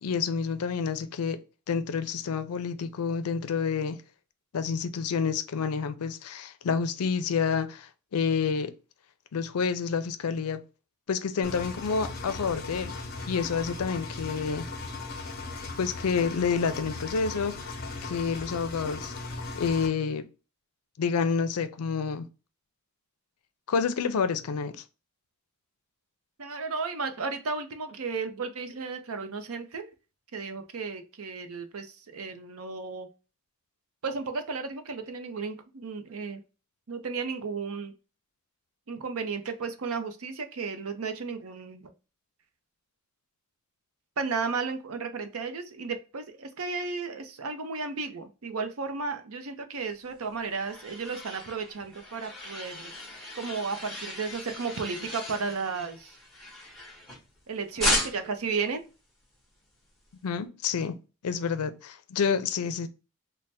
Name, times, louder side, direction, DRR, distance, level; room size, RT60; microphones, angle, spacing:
voice 1, 0.0-1.4 1.7-4.0 4.5-8.7 9.3-10.6 11.1-13.0 13.2-14.7 15.8-19.1 19.5-20.2 21.0-22.3 23.7-24.8 60.2-61.0 61.2-62.9, left 5 dB, 85° left, 0.4 m, -29 dB
Engine, 11.4-19.9, left 3 dB, 45° left, 0.6 m, -38 dB
voice 2, 26.4-29.9 30.3-33.1 34.0-36.4 36.9-37.9 38.9-41.9 44.2-52.9 53.3-56.2 57.5-58.8, right 4 dB, 70° right, 0.6 m, -34 dB
sound 1, 50.1-57.4 57.8-58.5, left 1 dB, ahead, 0.8 m, -35 dB
3.3 x 2.1 x 4.1 m
head